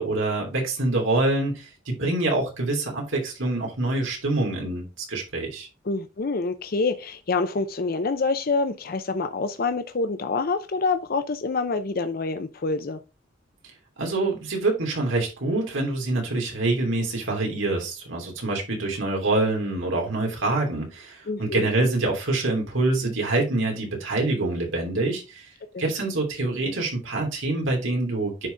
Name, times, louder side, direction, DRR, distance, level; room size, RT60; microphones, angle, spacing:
voice 1, 0.0-4.8 5.1-5.7 14.0-25.5 25.8-28.5, right 2 dB, 85° right, 3.2 m, -25 dB
voice 2, 5.8-13.0 21.3-21.7 25.7-25.8, left 3 dB, 50° left, 0.6 m, -26 dB
10.0 x 4.1 x 3.4 m
head